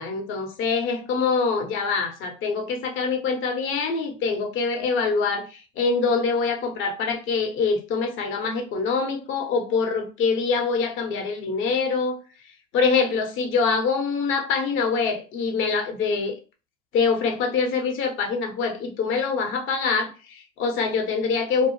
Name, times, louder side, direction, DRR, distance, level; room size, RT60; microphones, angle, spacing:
voice 1, 0.0-12.2 12.7-16.3 16.9-21.7, left 4 dB, 35° left, 0.7 m, -24 dB
2.3 x 2.1 x 3.0 m
hypercardioid pair, 90°, 37 cm